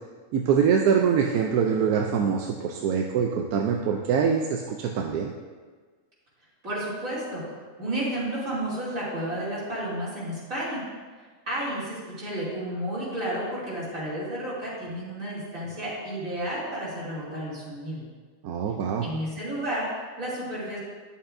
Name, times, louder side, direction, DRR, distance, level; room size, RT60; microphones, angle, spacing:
voice 1, 0.3-5.3 18.4-19.1, right 7 dB, 90° right, 2 dB, 1.1 m, -24 dB
voice 2, 6.6-7.4 7.8-10.8 11.5-18.0 19.0-20.8, right 1 dB, 65° right, -9 dB, 3.3 m, -32 dB
11.0 x 7.0 x 2.6 m, 1.5 s
omnidirectional pair, 1.5 m